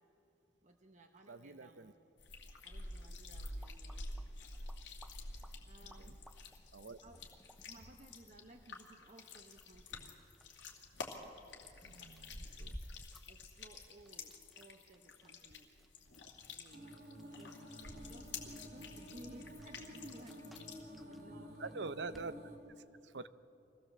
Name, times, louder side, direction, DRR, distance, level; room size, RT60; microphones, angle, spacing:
voice 1, 0.6-2.0 2.6-4.1 5.6-6.2 7.0-7.2 7.5-10.2 13.3-15.7 16.5-16.9 17.4-17.6 18.1-22.2, right 1 dB, 40° right, 3 dB, 1.0 m, -58 dB
voice 2, 1.3-1.9 6.0-6.2 6.7-7.0 11.8-12.8 21.6-22.3 23.0-23.3, right 3 dB, 75° right, 14 dB, 0.7 m, -45 dB
sound 1, 2.2-21.0, left 3 dB, 85° left, 2.6 m, -50 dB
sound 2, 3.1-22.3, equal, ahead, 0.5 m, -59 dB
sound 3, 16.7-22.6, equal, 60° right, 2.9 m, -51 dB
24.0 x 16.5 x 7.3 m, 2.7 s
head